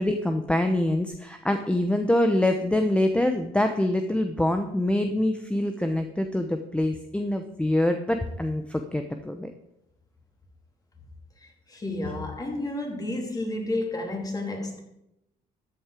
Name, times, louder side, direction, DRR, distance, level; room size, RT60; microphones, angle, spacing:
voice 1, 0.0-9.5, left 1 dB, 5° left, 6 dB, 0.9 m, -25 dB
voice 2, 11.4-14.8, left 2 dB, 20° left, 2 dB, 2.9 m, -31 dB
13.5 x 8.0 x 4.9 m, 0.83 s
cardioid pair, 110°, 17 cm